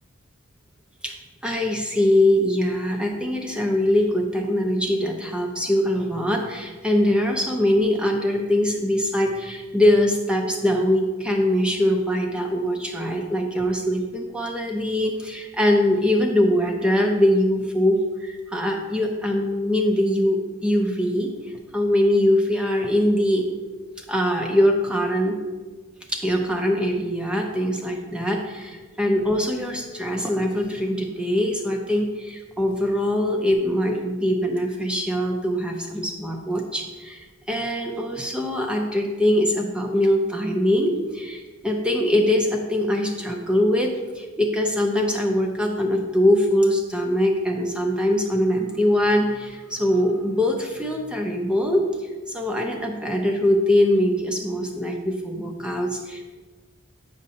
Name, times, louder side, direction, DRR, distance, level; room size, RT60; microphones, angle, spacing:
voice 1, 1.4-21.3 21.7-23.5 24.0-25.4 26.1-51.8 52.3-56.3, left 1 dB, 5° right, 1 dB, 0.5 m, -22 dB
7.9 x 5.2 x 2.8 m, 1.3 s
head